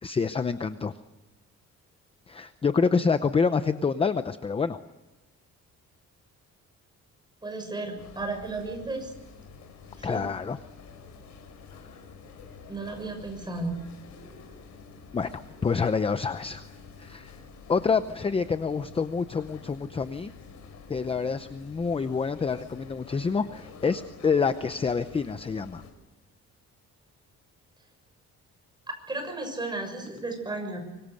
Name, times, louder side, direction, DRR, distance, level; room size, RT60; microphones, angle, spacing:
voice 1, 0.0-0.9 2.3-4.8 10.0-10.6 15.1-16.7 17.0-17.4 17.7-20.3 20.9-25.8, left 5 dB, 20° left, 10 dB, 0.7 m, -27 dB
voice 2, 7.4-9.1 9.9-10.3 12.7-13.8 29.1-30.8, right 2 dB, 15° right, 4 dB, 6.6 m, -34 dB
sound 1, 8.0-25.9, left 5 dB, 65° left, 5.0 m, -48 dB
25.5 x 23.0 x 6.5 m, 1.1 s
cardioid pair, 165°, 30 cm